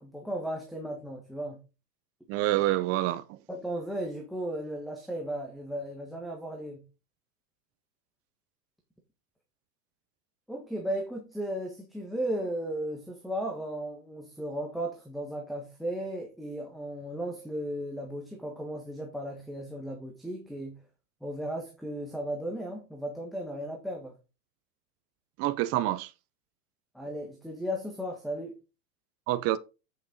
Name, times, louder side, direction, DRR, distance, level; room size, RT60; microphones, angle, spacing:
voice 1, 0.0-1.6 3.5-6.8 10.5-20.8 21.2-24.1 26.9-28.6, right 1 dB, ahead, 1.4 m, -35 dB
voice 2, 2.3-3.4 25.4-26.1 29.3-29.6, right 15 dB, 30° right, 0.6 m, -27 dB
8.7 x 6.8 x 3.9 m
supercardioid pair, 145°, 48 cm